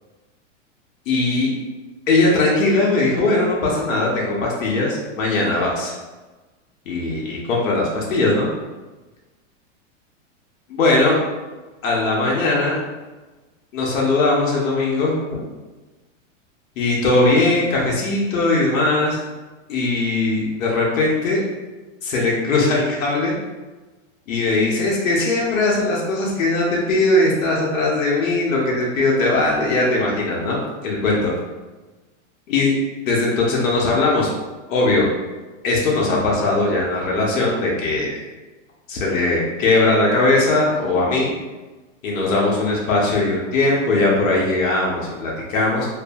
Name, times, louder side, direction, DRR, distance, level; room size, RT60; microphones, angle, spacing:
voice 1, 1.1-1.5 2.1-5.9 6.9-8.5 10.7-11.2 11.8-12.8 13.7-15.1 16.8-19.2 19.7-21.4 22.0-23.3 24.3-31.3 32.5-32.8 33.1-34.3 34.7-35.1 35.6-38.2 38.9-41.3 42.0-45.9, left 2 dB, 90° left, -3 dB, 0.8 m, -19 dB
2.6 x 2.5 x 2.3 m, 1.2 s
supercardioid pair, 150°, 39 cm